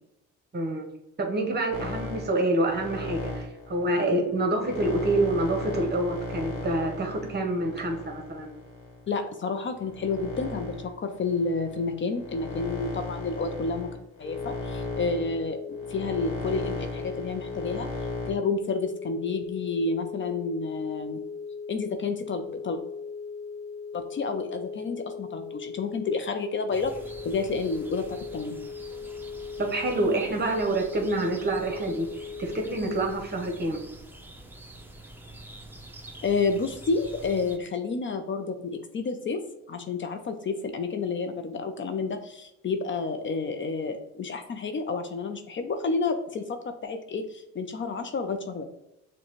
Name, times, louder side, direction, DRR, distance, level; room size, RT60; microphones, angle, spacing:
voice 1, 0.5-0.9 1.2-8.5 29.6-32.1 32.4-33.8, right 2 dB, 35° right, 3 dB, 1.1 m, -27 dB
sound 1, 1.7-9.1 9.7-18.3, left 2 dB, 60° left, 1.1 m, -36 dB
voice 2, 9.1-13.9 14.2-17.9 18.3-21.2 21.7-22.8 23.9-26.9 27.2-28.6 36.2-39.4 39.7-48.6, left 4 dB, 40° left, 7 dB, 0.5 m, -30 dB
sound 2, 14.2-33.2, left 5 dB, 85° left, 0.6 m, -38 dB
sound 3, 26.7-37.6, right 1 dB, 5° right, 0.6 m, -46 dB
6.2 x 2.3 x 3.0 m, 0.86 s
cardioid pair, 90°, 30 cm